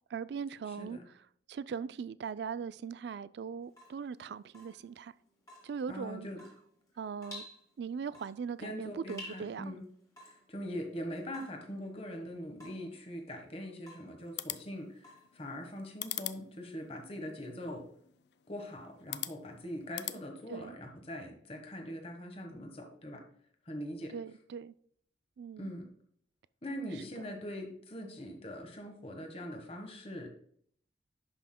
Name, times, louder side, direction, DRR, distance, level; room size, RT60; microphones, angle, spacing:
voice 1, 0.1-1.0 1.5-5.1 5.6-6.3 7.0-7.5 7.8-9.8 20.5-20.8 24.1-24.7 25.4-25.7 27.2-27.3, right 6 dB, 65° right, 0.3 m, -40 dB
voice 2, 0.7-1.0 5.9-6.4 8.6-9.8 10.2-17.9 18.5-23.2 23.6-24.1 25.6-25.9 26.6-30.3, equal, 30° left, 1.3 m, -42 dB
Water tap faucet / Drip, 3.6-15.8, left 1 dB, 15° left, 2.0 m, -54 dB
sound 1, 14.2-20.2, left 14 dB, 65° left, 0.4 m, -44 dB
11.0 x 5.7 x 2.2 m
head